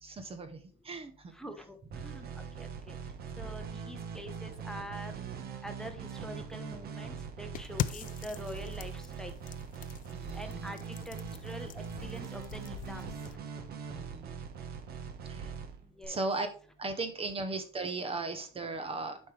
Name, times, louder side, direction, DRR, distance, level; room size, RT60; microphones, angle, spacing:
voice 1, 0.0-1.3 10.1-10.7 13.9-14.4 15.3-15.5 16.1-16.5 16.8-19.2, right 3 dB, 30° right, 9 dB, 1.0 m, -37 dB
voice 2, 1.3-2.3 2.6-3.0 3.4-5.1 5.6-9.3 10.3-11.2 11.4-13.1 16.0-16.2, equal, 5° left, 6 dB, 1.1 m, -45 dB
sound 1, 1.9-16.1, right 6 dB, 50° right, 1.2 m, -42 dB
sound 2, 7.5-13.3, left 11 dB, 40° left, 0.5 m, -41 dB
8.4 x 5.3 x 3.3 m, 0.42 s
cardioid pair, 120°, 20 cm